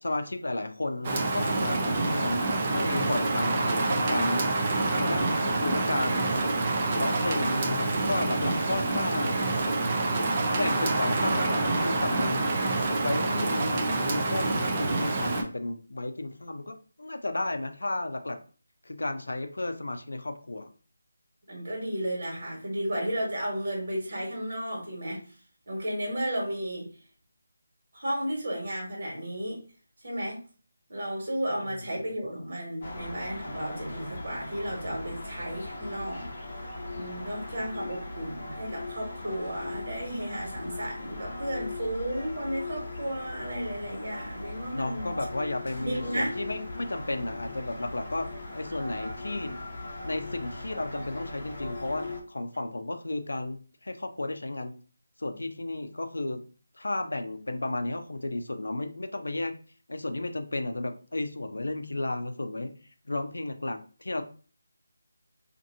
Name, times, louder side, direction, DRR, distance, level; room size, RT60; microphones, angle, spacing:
voice 1, 0.0-2.4 2.7-4.5 5.0-6.5 6.9-9.5 10.5-12.4 13.0-18.4 18.8-20.7 44.7-48.3 48.5-49.6 50.0-54.7 55.2-56.4 56.8-59.5 59.9-62.7 63.1-64.2, left 2 dB, 85° left, 7 dB, 0.5 m, -33 dB
Rain, 1.0-15.4, right 2 dB, 25° right, 0.4 m, -27 dB
voice 2, 21.5-25.3 25.7-26.9 27.9-29.6 30.0-30.4 30.9-36.3 36.9-45.1 45.8-46.4, equal, 55° right, -2 dB, 1.4 m, -33 dB
sound 1, 32.8-52.2, left 2 dB, 35° left, 0.7 m, -39 dB
2.8 x 2.5 x 2.6 m, 0.38 s
figure-of-eight pair, 170°, 0 cm